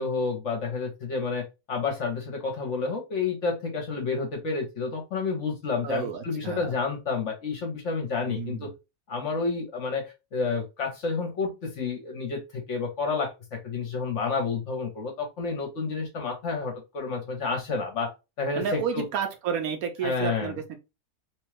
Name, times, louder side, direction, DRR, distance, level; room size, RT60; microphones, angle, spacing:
voice 1, 0.0-8.7 9.1-18.1 18.4-19.0 20.0-20.5, left 4 dB, 55° left, 3 dB, 1.0 m, -30 dB
voice 2, 5.8-6.7 8.2-8.7 18.6-20.8, right 7 dB, 70° right, 5 dB, 1.0 m, -31 dB
3.0 x 2.3 x 3.1 m, 0.25 s
omnidirectional pair, 1.7 m